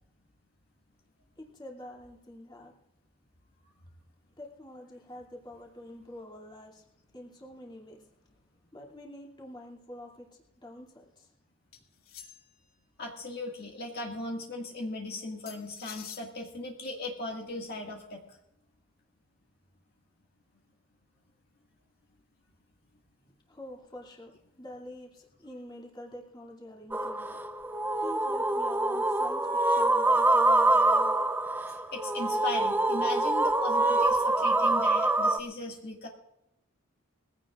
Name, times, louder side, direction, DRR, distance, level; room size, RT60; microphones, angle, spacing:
voice 1, 1.4-2.7 4.4-6.8 7.1-8.1 8.7-11.3 23.3-27.4 28.0-31.3, left 1 dB, 20° left, -2 dB, 2.6 m, -46 dB
sound 1, 11.7-12.6 15.5-16.3, left 9 dB, 85° left, 2.6 m, -47 dB
voice 2, 13.0-18.2 31.9-36.1, left 2 dB, 45° left, -1 dB, 1.9 m, -37 dB
sound 2, 26.9-35.4, right 2 dB, 10° right, 0.5 m, -25 dB
22.0 x 16.0 x 2.4 m, 0.86 s
head